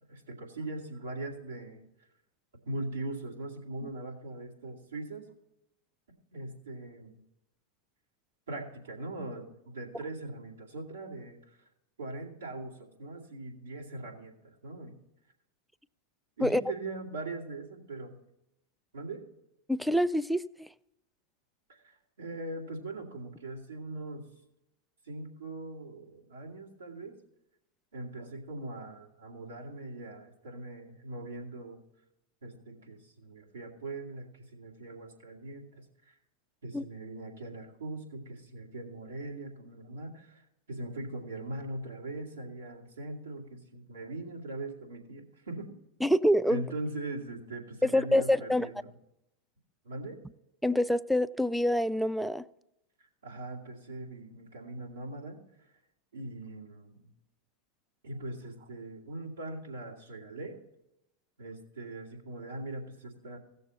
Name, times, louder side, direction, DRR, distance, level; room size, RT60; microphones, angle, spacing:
voice 1, 0.1-1.8 2.7-5.3 6.3-7.2 8.5-11.4 12.0-15.0 16.4-18.2 18.9-19.2 21.7-24.3 25.0-27.2 27.9-31.8 32.4-36.1 36.6-45.7 46.5-48.9 49.8-50.2 53.2-55.4 56.1-57.1 58.0-60.6 61.4-63.4, right 2 dB, 80° right, 2.3 m, -41 dB
voice 2, 19.7-20.7 36.7-36.8 46.0-46.6 47.8-48.7 50.6-52.4, left 1 dB, ahead, 0.4 m, -26 dB
16.0 x 6.9 x 4.1 m
figure-of-eight pair, 90°, 0 cm